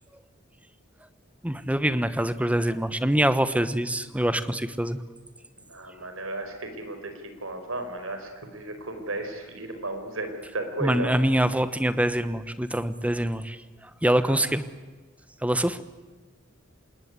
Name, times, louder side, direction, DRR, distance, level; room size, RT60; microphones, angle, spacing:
voice 1, 1.4-5.0 10.8-13.6 14.0-14.6 15.4-15.8, right 1 dB, 5° right, 13 dB, 1.1 m, -24 dB
voice 2, 5.7-7.1 7.4-11.1 14.2-14.4, right 2 dB, 85° right, 7 dB, 5.0 m, -34 dB
26.5 x 20.0 x 9.6 m, 1.3 s
head